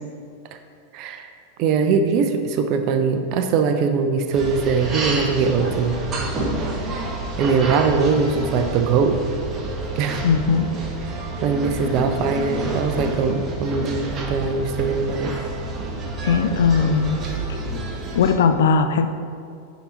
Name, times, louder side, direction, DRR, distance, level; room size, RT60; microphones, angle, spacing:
voice 1, 0.9-1.3 1.6-6.0 7.4-9.2 10.0-10.2 11.4-15.3, right 5 dB, 40° right, 7 dB, 0.6 m, -21 dB
sound 1, 4.3-18.3, right 2 dB, 25° right, 1.1 m, -28 dB
voice 2, 10.2-10.7 16.2-17.2 18.1-19.1, left 5 dB, 60° left, 9 dB, 0.5 m, -18 dB
9.6 x 4.0 x 4.1 m, 2.3 s
figure-of-eight pair, 90°, 0 cm